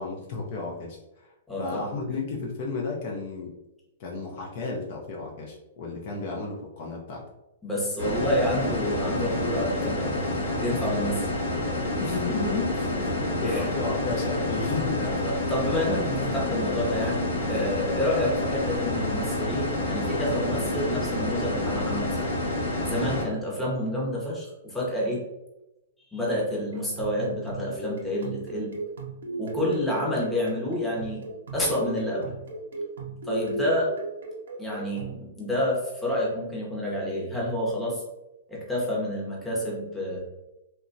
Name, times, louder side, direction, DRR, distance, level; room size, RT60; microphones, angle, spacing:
voice 1, 0.0-3.5 4.0-7.2 8.0-8.1 12.0-12.7 13.4-15.0, left 4 dB, 50° left, -1 dB, 0.5 m, -32 dB
voice 2, 1.5-1.9 7.6-10.2 10.6-11.3 13.4-13.7 15.0-22.3 22.8-25.2 26.1-28.8 29.4-31.2 31.5-32.3 33.2-33.9 34.6-38.0 38.5-40.2, left 1 dB, 5° left, -5 dB, 0.8 m, -29 dB
sound 1, 8.0-23.2, left 1 dB, 70° left, 1.1 m, -28 dB
sound 2, 26.7-35.2, right 3 dB, 85° right, 0.6 m, -37 dB
2.9 x 2.2 x 2.5 m, 0.93 s
hypercardioid pair, 150°, 0 cm